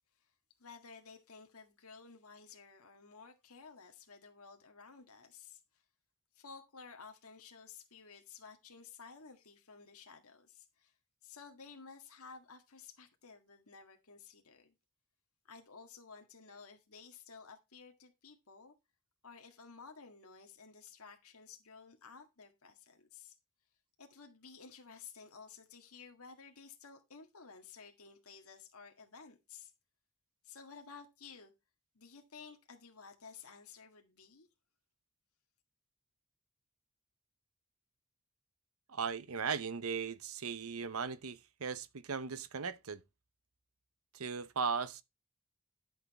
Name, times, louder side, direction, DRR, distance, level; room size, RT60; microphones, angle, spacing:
voice 1, 0.6-5.6 6.3-10.9 11.2-14.7 15.4-18.7 19.2-23.4 24.0-29.7 30.4-31.5 31.9-34.5, left 5 dB, 85° left, 1.7 m, -54 dB
voice 2, 38.9-43.0 44.1-45.0, right 5 dB, 75° right, 0.8 m, -37 dB
11.0 x 7.1 x 4.1 m
head